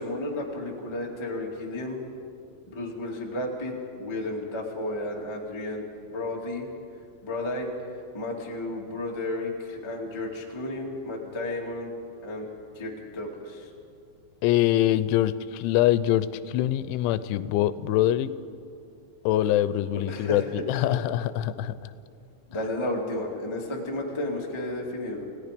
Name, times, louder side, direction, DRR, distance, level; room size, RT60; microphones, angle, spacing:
voice 1, 0.0-2.0 2.7-6.7 7.2-11.9 12.2-12.5 12.7-13.7 20.1-20.6 20.9-21.0 22.5-25.2, left 1 dB, 15° left, -1 dB, 0.8 m, -33 dB
voice 2, 14.4-18.3 19.3-21.9, left 13 dB, 90° left, 14 dB, 3.1 m, -24 dB
29.5 x 17.5 x 5.2 m, 2.4 s
omnidirectional pair, 5.3 m